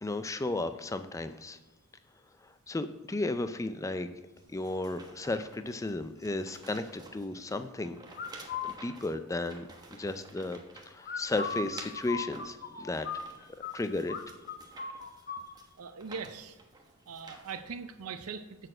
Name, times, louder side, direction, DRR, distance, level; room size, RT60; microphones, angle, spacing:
voice 1, 0.0-1.6 2.4-4.1 4.5-8.0 8.7-10.6 10.9-13.1 13.7-14.1, left 2 dB, 15° left, 10 dB, 0.4 m, -34 dB
sound 1, 4.4-17.6, right 2 dB, 20° right, 1.0 m, -52 dB
sound 2, 8.1-8.7 11.0-13.7 14.1-14.2 14.5-15.5, left 5 dB, 45° left, 0.9 m, -37 dB
voice 2, 15.8-16.6 17.1-18.7, right 5 dB, 75° right, 9 dB, 0.6 m, -41 dB
6.6 x 6.5 x 7.5 m, 1.1 s
head